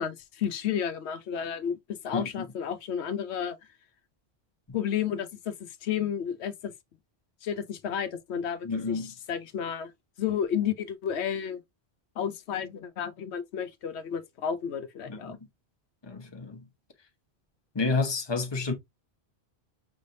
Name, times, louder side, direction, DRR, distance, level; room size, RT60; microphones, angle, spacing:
voice 1, 0.0-3.6 4.7-6.7 7.4-9.9 10.2-11.6 12.2-15.4, left 8 dB, 80° left, 1.0 m, -32 dB
voice 2, 8.6-9.1 15.1-15.4 16.0-16.7 17.7-18.7, left 3 dB, 25° left, 1.1 m, -30 dB
6.0 x 3.3 x 2.6 m
omnidirectional pair, 1.1 m